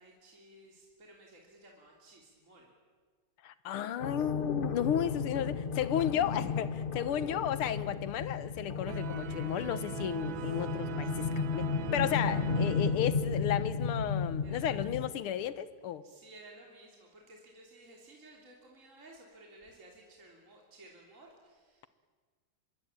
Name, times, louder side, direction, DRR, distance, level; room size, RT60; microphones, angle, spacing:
voice 1, 0.0-2.7 10.4-11.2 14.4-14.9 16.0-21.9, right 1 dB, 35° right, -1 dB, 3.7 m, -56 dB
voice 2, 3.4-11.7 11.9-16.0, left 10 dB, 85° left, 14 dB, 2.0 m, -33 dB
sound 1, 4.0-15.1, left 5 dB, 45° left, 0.7 m, -34 dB
sound 2, 8.9-13.7, right 8 dB, 70° right, 1.7 m, -41 dB
25.0 x 23.0 x 8.9 m, 1.5 s
omnidirectional pair, 2.4 m